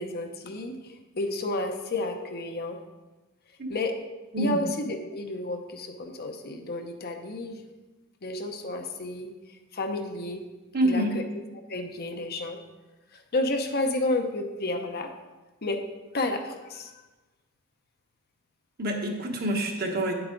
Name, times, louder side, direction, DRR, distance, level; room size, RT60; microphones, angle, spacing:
voice 1, 0.0-2.8 3.7-4.0 4.4-7.6 8.2-9.3 9.7-10.4 10.8-11.2 11.7-12.6 13.1-15.1 15.6-15.8 16.1-16.9, left 2 dB, 45° left, 5 dB, 0.8 m, -31 dB
voice 2, 10.7-11.1 18.8-20.1, right 1 dB, 45° right, 2 dB, 1.2 m, -26 dB
9.4 x 7.9 x 3.9 m, 1.1 s
head